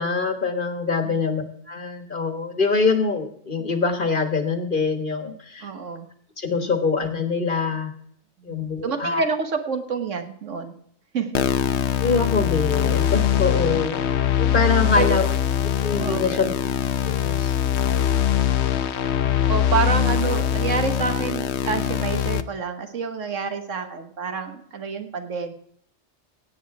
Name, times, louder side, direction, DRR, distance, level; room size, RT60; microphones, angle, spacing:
voice 1, 0.0-5.7 6.4-7.9 8.4-9.2 12.0-14.0 14.4-15.2 15.8-16.5 17.0-17.5, left 4 dB, 40° left, 7 dB, 1.6 m, -24 dB
voice 2, 5.6-6.1 8.4-8.5 8.8-10.7 11.1-11.4 13.7-13.8 14.8-15.2 16.0-16.3 19.5-25.5, right 5 dB, 75° right, 7 dB, 1.7 m, -28 dB
sound 1, 11.3-22.4, left 10 dB, 65° left, 0.9 m, -22 dB
16.5 x 8.5 x 4.7 m, 0.68 s
omnidirectional pair, 1.3 m